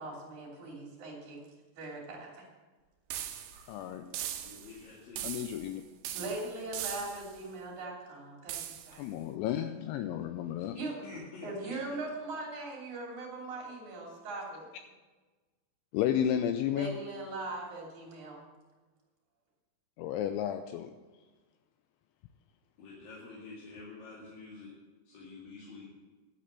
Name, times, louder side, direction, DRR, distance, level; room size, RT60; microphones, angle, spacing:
voice 1, 0.0-1.4 1.8-2.3 3.5-3.7 6.1-9.0 10.8-10.9 11.4-14.7 16.8-18.4, right 2 dB, 40° right, -1 dB, 4.0 m, -40 dB
sound 1, 3.1-3.7 4.1-4.8 5.2-5.7 6.0-7.4 8.5-9.0, right 11 dB, 80° right, 2.5 m, -40 dB
voice 2, 3.7-4.0 5.2-5.8 9.0-10.8 15.9-17.0 20.0-20.9, left 10 dB, 85° left, 8 dB, 2.7 m, -32 dB
voice 3, 4.4-5.3 11.0-11.7 22.8-24.7 25.1-25.9, left 4 dB, 55° left, -6 dB, 3.3 m, -48 dB
11.5 x 8.5 x 7.5 m, 1.3 s
omnidirectional pair, 5.8 m